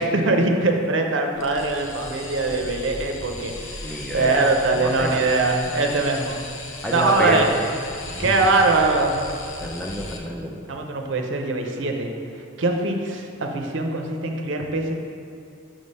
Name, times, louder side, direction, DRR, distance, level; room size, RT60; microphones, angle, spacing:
voice 1, 0.0-3.5 3.8-6.4 6.9-7.5 8.2-9.2 10.7-12.1 12.6-14.9, right 3 dB, 65° right, 3 dB, 0.6 m, -22 dB
sound 1, 1.3-10.2, left 2 dB, 80° left, 0.7 m, -37 dB
voice 2, 3.8-4.5 4.8-5.3 6.8-7.4 8.1-8.5 9.6-10.6, equal, 5° left, -1 dB, 0.4 m, -28 dB
6.2 x 3.3 x 5.4 m, 2.6 s
head